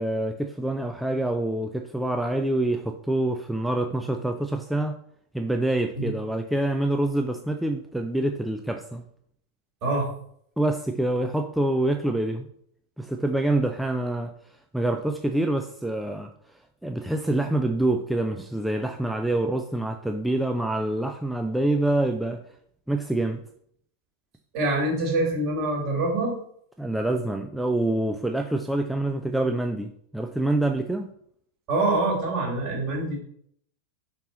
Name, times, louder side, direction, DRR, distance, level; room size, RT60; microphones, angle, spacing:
voice 1, 0.0-5.0 5.3-9.0 10.6-12.5 13.0-14.3 14.7-16.3 16.8-22.4 22.9-23.4 26.8-31.1, right 1 dB, ahead, 4 dB, 0.4 m, -26 dB
voice 2, 24.5-26.4 31.7-33.2, right 2 dB, 40° right, -2 dB, 2.6 m, -25 dB
5.4 x 4.5 x 3.9 m, 0.66 s
figure-of-eight pair, 90°, 0 cm